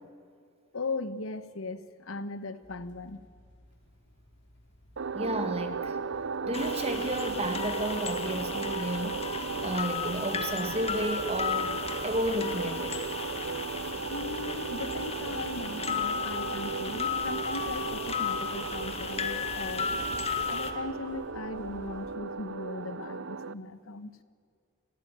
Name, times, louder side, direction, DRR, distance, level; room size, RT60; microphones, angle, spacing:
voice 1, 0.7-3.2 14.1-20.1 20.5-24.2, left 3 dB, 75° left, 13 dB, 1.2 m, -38 dB
sound 1, 2.6-22.2, left 1 dB, 60° left, 2.9 m, -52 dB
sound 2, 5.0-23.5, right 5 dB, 65° right, 0.7 m, -36 dB
voice 2, 5.1-6.0 6.5-9.2 9.6-13.0, right 1 dB, 30° right, 7 dB, 2.0 m, -32 dB
sound 3, 6.5-20.7, left 6 dB, 30° left, 1.7 m, -35 dB
29.5 x 17.5 x 9.4 m, 2.2 s
head